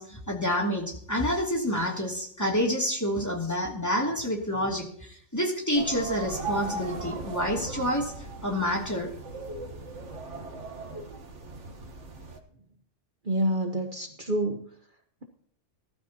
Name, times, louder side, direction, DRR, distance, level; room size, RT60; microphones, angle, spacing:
voice 1, 0.0-8.1 8.4-9.1, equal, 15° left, -1 dB, 2.9 m, -28 dB
sound 1, 5.8-12.4, right 2 dB, 80° right, 1.8 m, -38 dB
voice 2, 13.2-14.6, right 1 dB, 45° right, 4 dB, 1.4 m, -27 dB
19.5 x 12.5 x 2.9 m, 0.64 s
omnidirectional pair, 1.2 m